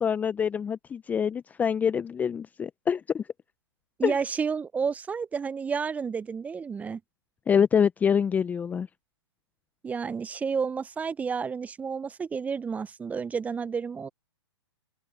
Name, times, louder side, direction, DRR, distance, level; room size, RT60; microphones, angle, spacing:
voice 1, 0.0-3.3 4.0-4.1 7.5-8.9, left 7 dB, 10° left, 0.7 m, -25 dB
voice 2, 4.0-7.0 9.8-14.1, right 6 dB, 10° right, 1.0 m, -31 dB
open air
figure-of-eight pair, 125°, 15 cm